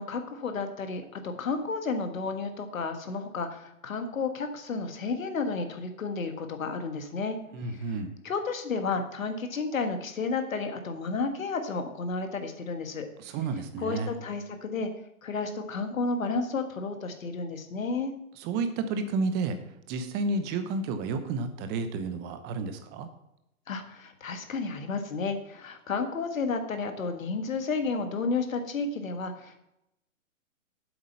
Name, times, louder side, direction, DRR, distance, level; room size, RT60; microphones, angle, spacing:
voice 1, 0.0-7.4 7.7-7.9 8.2-13.1 13.8-14.9 15.2-18.1 23.7-29.6, left 4 dB, 70° left, 6 dB, 1.7 m, -32 dB
voice 2, 7.5-8.1 13.2-14.1 18.4-19.6 19.9-23.1, right 3 dB, 25° right, 9 dB, 0.9 m, -31 dB
7.9 x 7.8 x 5.5 m, 0.85 s
figure-of-eight pair, 120°, 42 cm